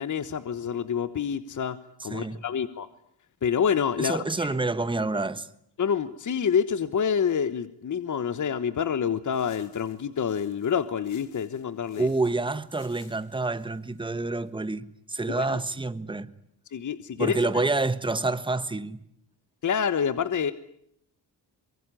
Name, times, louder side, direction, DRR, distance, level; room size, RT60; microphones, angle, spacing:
voice 1, 0.0-1.8 2.0-2.9 3.4-4.5 5.8-12.1 15.3-15.6 16.7-17.4 19.6-20.5, left 7 dB, 45° left, 1.3 m, -27 dB
voice 2, 2.1-2.4 4.0-5.5 12.0-16.3 17.2-19.0, right 3 dB, 10° right, 1.4 m, -28 dB
sound 1, 9.3-14.5, left 8 dB, 85° left, 4.6 m, -58 dB
25.0 x 22.5 x 9.9 m
cardioid pair, 100°, 42 cm